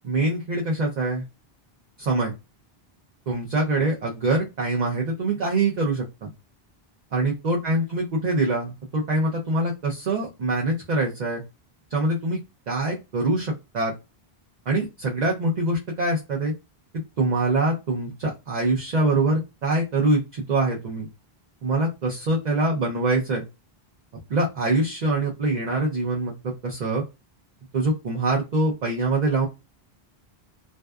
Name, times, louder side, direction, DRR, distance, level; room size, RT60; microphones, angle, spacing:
voice 1, 0.0-1.2 2.0-2.3 3.3-6.3 7.1-11.4 11.9-12.4 12.7-13.9 14.7-16.5 17.2-21.1 21.6-23.4 24.3-27.0 27.7-29.5, right 2 dB, 50° right, -2 dB, 0.7 m, -24 dB
2.6 x 2.2 x 2.3 m, 0.25 s
omnidirectional pair, 1.0 m